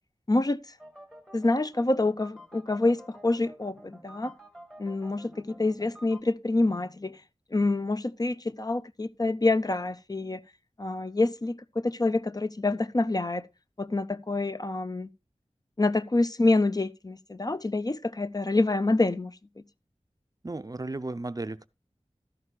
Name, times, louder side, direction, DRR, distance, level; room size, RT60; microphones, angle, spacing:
voice 1, 0.3-0.6 1.3-4.3 4.8-7.2 7.5-10.4 10.8-11.6 11.8-13.5 13.8-15.1 15.8-19.3, left 2 dB, 35° left, 0.5 m, -27 dB
sound 1, 0.8-6.2, equal, 5° left, 1.6 m, -50 dB
voice 2, 20.4-21.7, right 2 dB, 30° right, 0.5 m, -34 dB
12.5 x 11.0 x 2.3 m
wide cardioid pair, 45°, 12 cm